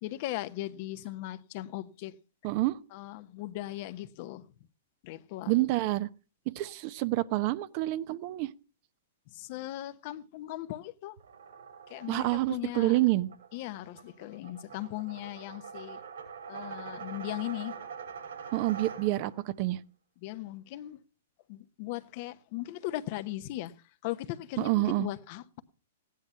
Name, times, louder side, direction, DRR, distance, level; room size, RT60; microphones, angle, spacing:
voice 1, 0.0-2.2 2.9-4.5 5.0-5.6 9.3-11.2 11.9-13.0 13.5-16.0 16.5-17.7 20.2-21.0 21.5-23.7 24.0-25.6, left 16 dB, 45° left, 0.9 m, -38 dB
voice 2, 2.4-2.8 5.5-6.1 6.5-8.5 12.1-13.3 18.5-19.8 24.6-25.1, right 18 dB, 45° right, 0.8 m, -28 dB
sound 1, 11.2-19.5, right 6 dB, 75° right, 6.6 m, -45 dB
16.0 x 10.5 x 5.6 m
hypercardioid pair, 120°, 0 cm